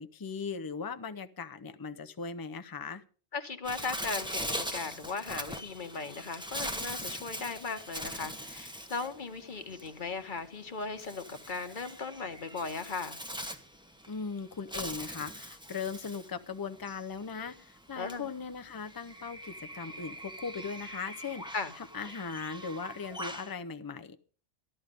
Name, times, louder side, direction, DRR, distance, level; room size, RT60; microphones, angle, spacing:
voice 1, 0.0-3.0 14.1-21.4 21.8-24.2, left 5 dB, 25° left, 0.6 m, -39 dB
voice 2, 3.3-13.2 18.0-18.3 21.5-21.7, left 4 dB, 45° left, 1.2 m, -37 dB
Bird, 3.6-23.5, equal, 5° right, 1.0 m, -42 dB
13.5 x 11.5 x 5.2 m
omnidirectional pair, 1.2 m